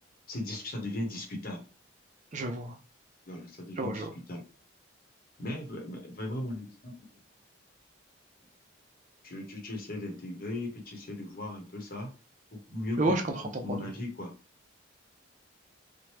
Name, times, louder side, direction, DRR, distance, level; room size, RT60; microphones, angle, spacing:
voice 1, 0.3-1.6 3.3-4.4 5.4-7.0 9.2-12.1 12.5-14.3, left 1 dB, 45° left, 0.9 m, -37 dB
voice 2, 2.3-2.8 3.8-4.1 13.0-13.2 13.5-13.9, right 2 dB, 35° right, 0.4 m, -30 dB
3.0 x 2.1 x 3.1 m
head